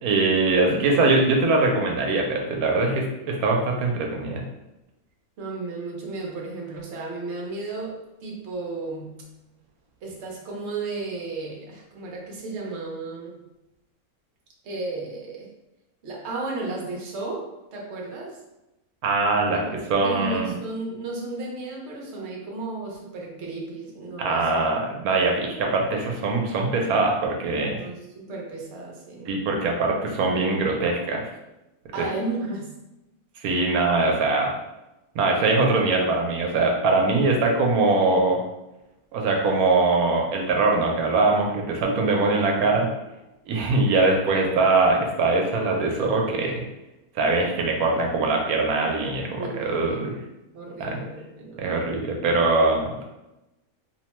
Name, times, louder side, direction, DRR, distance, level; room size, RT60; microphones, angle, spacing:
voice 1, 0.0-4.4 19.0-19.6 19.9-20.5 24.2-27.8 29.3-31.3 32.0-32.1 33.4-34.5 35.1-38.4 39.1-42.9 43.5-46.7 47.2-50.1 50.8-51.0 51.6-53.0, right 3 dB, 80° right, 1 dB, 1.1 m, -22 dB
voice 2, 5.4-9.2 10.0-13.5 14.6-15.5 16.0-18.4 19.5-19.8 20.0-24.5 27.8-29.5 31.9-32.7 49.4-50.1 50.5-51.8, right 3 dB, 60° right, -2 dB, 0.9 m, -34 dB
2.8 x 2.1 x 2.9 m, 0.96 s
omnidirectional pair, 1.5 m